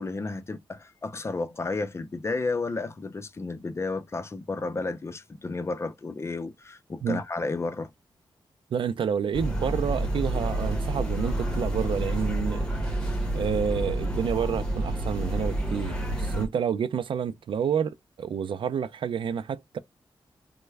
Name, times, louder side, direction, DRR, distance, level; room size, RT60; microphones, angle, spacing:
voice 1, 0.0-7.9, left 3 dB, 30° left, 0.5 m, -32 dB
voice 2, 8.7-13.0 13.3-19.8, right 7 dB, 70° right, 0.4 m, -29 dB
sound 1, 9.3-16.5, right 1 dB, 10° left, 1.0 m, -29 dB
3.2 x 2.1 x 3.3 m
wide cardioid pair, 130°, 9 cm